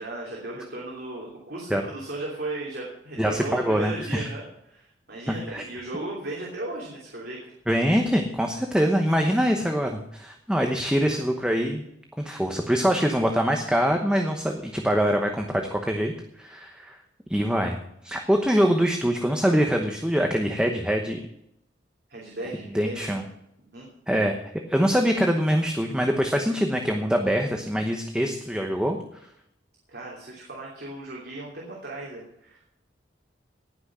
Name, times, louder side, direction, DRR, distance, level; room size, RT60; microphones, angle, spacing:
voice 1, 0.0-7.5 14.4-14.5 22.1-23.2 23.7-23.9 29.9-32.8, right 2 dB, 60° right, -3 dB, 3.1 m, -36 dB
voice 2, 3.2-4.3 5.3-5.6 7.7-11.8 12.2-17.0 17.3-17.8 18.0-21.2 22.7-23.2 24.1-24.4 24.7-29.0, equal, 5° right, 3 dB, 1.0 m, -24 dB
18.0 x 6.2 x 6.2 m, 0.77 s
head